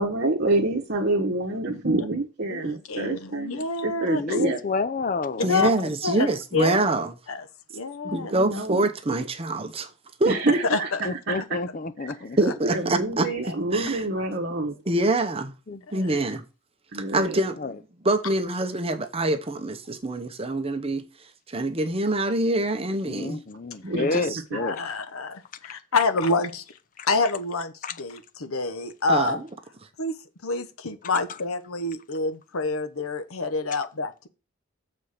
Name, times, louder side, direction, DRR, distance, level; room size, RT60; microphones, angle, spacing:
voice 1, 0.0-4.6 8.0-8.9 10.2-10.9 11.3-11.6 12.6-14.8 16.9-17.3 23.8-24.0 24.5-24.6, right 2 dB, 50° right, 1.2 m, -27 dB
voice 2, 1.7-2.0 2.5-4.4 5.5-5.7 6.0-6.8 7.3-7.4 7.7-8.3 10.7-11.0 15.9-16.0 24.1-24.2 24.5-26.6 27.1-29.4 30.0-30.1 30.4-34.3, left 3 dB, 80° left, 1.0 m, -28 dB
voice 3, 4.1-5.9 11.0-12.4 15.7-15.8 17.6-17.7 23.1-24.8 27.0-27.1 27.8-27.9, left 4 dB, 40° left, 0.6 m, -29 dB
voice 4, 5.4-7.1 8.1-9.9 10.2-10.6 12.4-14.0 14.9-15.5 15.9-16.4 17.1-17.6 18.0-21.1 21.5-23.4 24.0-24.4 29.1-29.5, right 2 dB, 25° right, 0.9 m, -25 dB
7.4 x 4.4 x 6.5 m
head